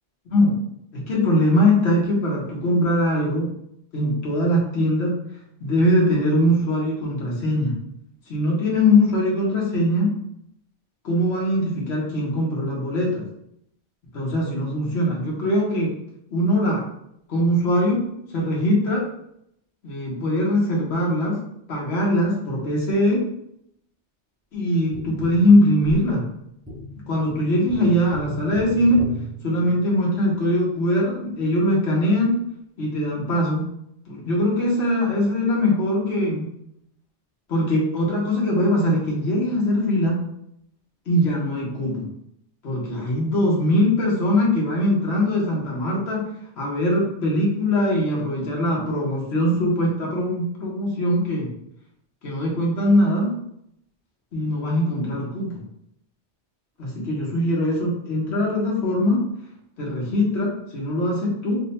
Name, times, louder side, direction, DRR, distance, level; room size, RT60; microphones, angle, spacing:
voice 1, 0.3-0.6 0.9-3.5 3.9-5.2 5.6-7.8 8.3-10.1 11.0-13.2 14.1-15.9 16.3-16.8 17.3-19.0 19.8-21.4 21.7-23.2 24.5-26.2 27.1-29.0 29.4-32.3 32.8-33.6 34.1-36.5 37.5-40.2 41.1-42.1 42.6-46.2 46.6-51.5 52.2-53.3 54.3-55.6 56.8-59.2 59.8-61.6, left 1 dB, 65° left, -3 dB, 1.2 m, -21 dB
Tap, 24.9-30.2 32.8-32.9, right 1 dB, 15° right, 0.4 m, -37 dB
3.3 x 2.1 x 4.1 m, 0.75 s
omnidirectional pair, 1.2 m